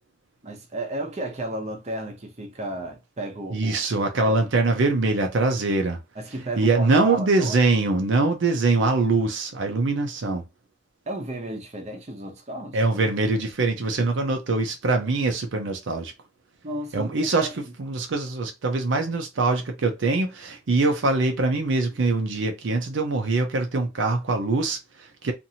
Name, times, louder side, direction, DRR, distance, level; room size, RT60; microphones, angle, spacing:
voice 1, 0.4-3.8 6.2-7.6 11.1-12.8 16.6-17.5, right 1 dB, 35° right, 0.6 m, -33 dB
voice 2, 3.5-6.0 6.6-10.4 12.7-16.1 16.9-25.3, right 3 dB, 75° right, 0.5 m, -23 dB
2.7 x 2.5 x 2.8 m
head